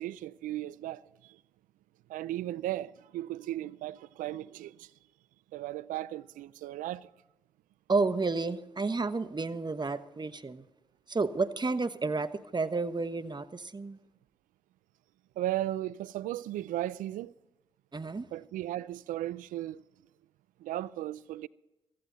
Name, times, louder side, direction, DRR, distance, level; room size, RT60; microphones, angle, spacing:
voice 1, 0.0-1.4 2.1-4.9 5.5-7.1 15.4-17.3 18.3-19.8 20.6-21.5, right 14 dB, 85° right, 0.4 m, -36 dB
voice 2, 7.9-10.6 11.1-14.0 17.9-18.3, right 3 dB, 35° right, 1.1 m, -31 dB
16.5 x 15.0 x 4.0 m
supercardioid pair, 40°, 13 cm